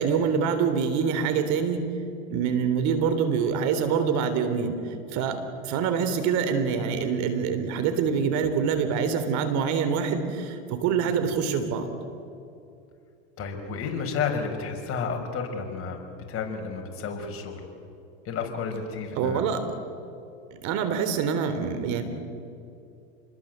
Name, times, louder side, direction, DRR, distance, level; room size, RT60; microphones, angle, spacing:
voice 1, 0.0-1.9 2.3-4.8 5.1-5.4 5.6-11.9 19.2-19.6 20.6-22.0, right 6 dB, 55° right, 9 dB, 3.7 m, -25 dB
voice 2, 13.4-16.0 16.3-17.6 18.2-19.4, left 5 dB, 40° left, 3 dB, 5.7 m, -31 dB
29.0 x 21.0 x 8.1 m, 2.5 s
supercardioid pair, 105°, 33 cm